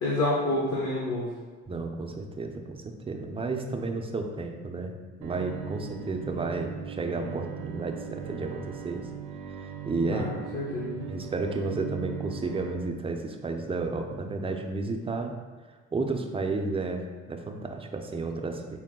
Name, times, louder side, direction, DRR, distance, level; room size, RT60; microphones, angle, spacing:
voice 1, 0.0-1.3 10.1-11.0, left 1 dB, 55° left, -6 dB, 1.0 m, -28 dB
voice 2, 1.7-9.1 9.6-10.3 11.1-15.3 15.9-18.8, right 3 dB, 20° right, 3 dB, 0.4 m, -32 dB
Bowed string instrument, 5.2-12.7, right 8 dB, 75° right, 0.5 m, -39 dB
4.6 x 2.1 x 3.6 m, 1.4 s
cardioid pair, 90°, 30 cm